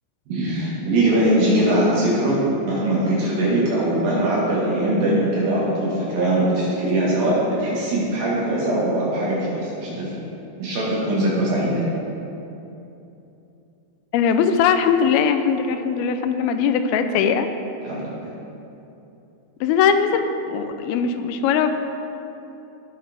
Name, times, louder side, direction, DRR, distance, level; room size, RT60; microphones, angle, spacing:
voice 1, 0.3-2.4 2.6-10.1 10.6-11.9 17.8-18.3, right 1 dB, 70° right, -7 dB, 3.4 m, -21 dB
voice 2, 14.1-17.5 19.6-21.7, left 7 dB, 85° left, 8 dB, 2.5 m, -20 dB
17.0 x 6.6 x 3.5 m, 2.9 s
omnidirectional pair, 4.3 m